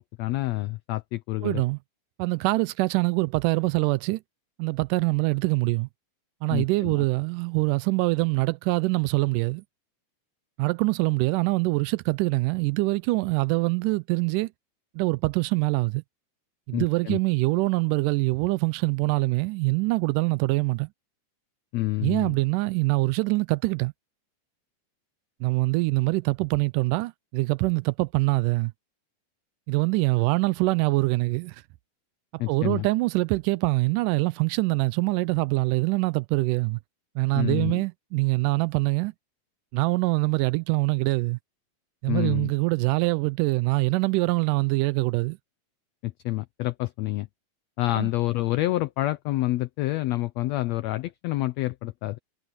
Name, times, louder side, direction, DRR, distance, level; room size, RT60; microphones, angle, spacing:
voice 1, 0.0-1.6 6.5-7.0 16.7-17.2 21.7-22.3 32.4-32.9 37.3-37.8 42.1-42.5 46.0-47.3 47.8-52.2, left 17 dB, 85° left, 1.5 m, -28 dB
voice 2, 1.4-1.8 2.2-4.2 4.6-5.9 6.4-9.6 10.6-14.5 15.0-16.0 16.7-20.9 22.0-23.9 25.4-28.7 29.7-31.6 32.5-36.8 37.2-39.1 39.7-41.4 42.0-45.4 48.0-48.1, right 23 dB, 85° right, 2.1 m, -24 dB
omnidirectional pair, 3.7 m